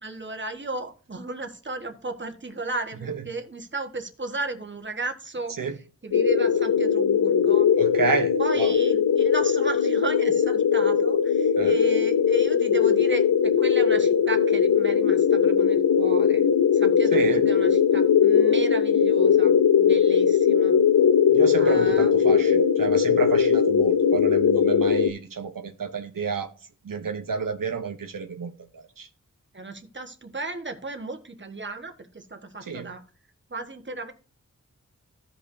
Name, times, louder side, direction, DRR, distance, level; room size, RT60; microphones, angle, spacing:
voice 1, 0.0-5.6 6.0-7.7 8.4-16.5 16.7-20.8 21.6-22.1 29.5-33.0 33.5-34.1, right 3 dB, 35° right, 1.4 m, -34 dB
sound 1, 6.1-25.1, left 7 dB, 90° left, 0.6 m, -20 dB
voice 2, 7.8-8.7 11.6-11.7 17.1-17.4 21.3-26.5 26.8-29.1 32.7-32.9, right 5 dB, 85° right, 0.8 m, -30 dB
15.0 x 5.4 x 2.7 m
wide cardioid pair, 60°, 33 cm